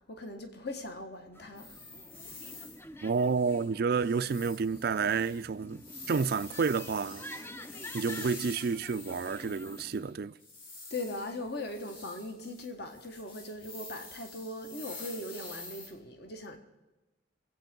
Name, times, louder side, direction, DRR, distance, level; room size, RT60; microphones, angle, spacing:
voice 1, 0.1-1.8 10.9-16.6, left 2 dB, 55° left, 1.5 m, -40 dB
sound 1, 1.3-10.1, left 1 dB, 10° left, 0.5 m, -48 dB
sound 2, 1.6-2.8 3.1-3.7 3.9-10.1 10.4-15.9, left 3 dB, 80° left, 4.0 m, -48 dB
voice 2, 3.0-7.2 7.9-10.4, right 5 dB, 50° right, 0.4 m, -30 dB
24.0 x 8.4 x 5.3 m
head